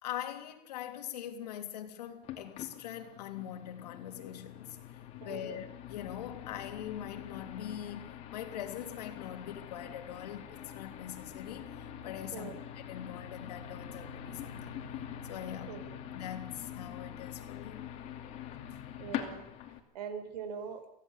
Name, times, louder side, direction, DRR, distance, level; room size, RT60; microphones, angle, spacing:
voice 1, 0.0-14.7 15.2-15.8 16.1-17.9 18.7-18.8, left 10 dB, 80° left, 3.3 m, -43 dB
sound 1, 2.2-19.8, left 9 dB, 30° left, 2.7 m, -44 dB
voice 2, 5.2-5.6 12.3-12.6 15.7-16.0 19.0-19.5 19.9-20.8, right 7 dB, 85° right, 4.7 m, -42 dB
24.5 x 17.0 x 8.3 m
supercardioid pair, 160°, 20 cm